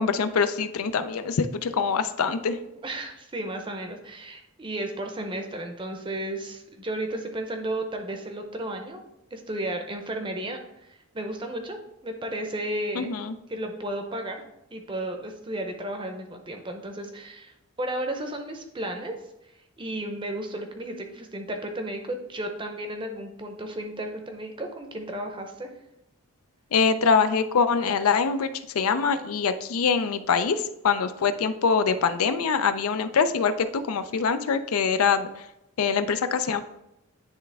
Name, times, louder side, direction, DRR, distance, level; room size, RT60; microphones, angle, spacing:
voice 1, 0.0-2.6 13.0-13.3 26.7-30.6 30.8-35.3 35.8-36.6, left 5 dB, 80° left, 10 dB, 0.5 m, -24 dB
voice 2, 2.8-9.1 9.3-10.6 10.9-13.1 13.5-14.4 14.7-19.2 19.8-25.7, right 1 dB, 20° right, 4 dB, 0.7 m, -33 dB
9.8 x 3.4 x 3.4 m, 0.86 s
head